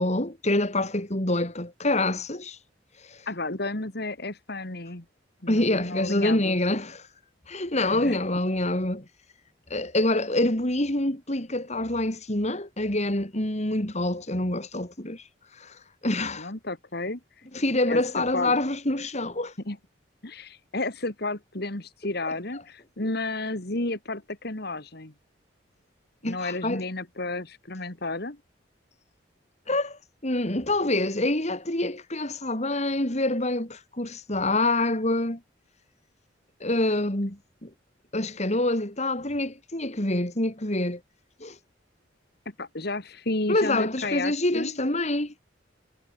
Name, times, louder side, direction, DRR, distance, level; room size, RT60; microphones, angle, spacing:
voice 1, 0.0-2.6 3.0-3.3 5.5-7.1 7.5-9.1 9.7-15.3 15.5-16.5 17.5-19.5 26.2-26.8 29.7-35.4 36.6-37.7 38.1-41.0 41.4-41.6 43.5-45.3, left 1 dB, 40° left, 3.7 m, -26 dB
voice 2, 3.3-5.0 5.4-6.6 7.9-8.2 16.4-17.2 17.9-18.0 18.3-18.5 19.7-19.8 20.2-25.1 26.2-28.4 42.5-44.8, left 2 dB, 55° left, 2.6 m, -32 dB
head